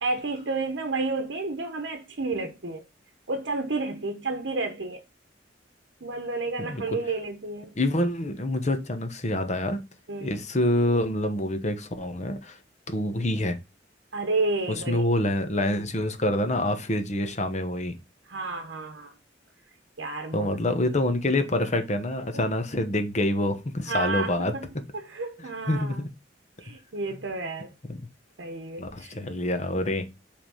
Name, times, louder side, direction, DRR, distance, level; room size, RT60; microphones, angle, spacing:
voice 1, 0.0-2.8 3.3-5.0 6.0-7.8 10.1-10.3 14.1-15.1 18.2-19.1 20.0-20.5 22.3-22.4 23.9-24.7 24.9-26.0 26.6-27.7 28.4-29.2, right 3 dB, 75° right, 0.9 m, -31 dB
voice 2, 7.8-9.8 10.2-12.6 12.9-13.6 14.7-17.9 20.3-24.5 25.7-26.1 27.9-28.0 28.8-30.1, left 1 dB, 40° left, 1.0 m, -26 dB
5.6 x 3.5 x 5.5 m
head